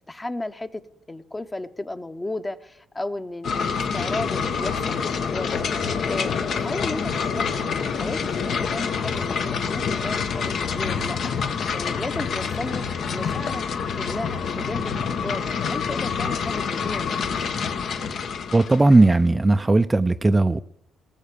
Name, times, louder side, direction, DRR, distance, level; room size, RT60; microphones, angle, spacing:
voice 1, 0.1-12.9 13.1-13.6 13.9-17.2, left 2 dB, 15° left, 0.9 m, -34 dB
sound 1, 3.4-19.2, left 6 dB, 65° left, 1.1 m, -27 dB
voice 2, 18.5-20.6, right 2 dB, 20° right, 0.4 m, -17 dB
19.0 x 7.3 x 6.8 m
cardioid pair, 90°, 0 cm